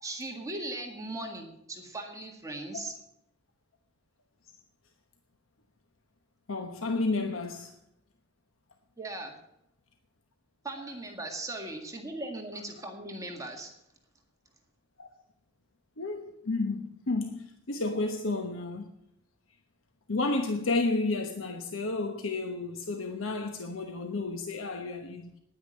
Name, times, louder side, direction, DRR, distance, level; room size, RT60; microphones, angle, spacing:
voice 1, 0.0-2.9 9.0-9.4 10.6-13.7, right 2 dB, 15° right, 1.8 m, -38 dB
voice 2, 6.5-7.7 15.0-15.1 16.0-18.9 20.1-25.3, left 3 dB, 80° left, 1.1 m, -31 dB
10.5 x 9.5 x 7.6 m
head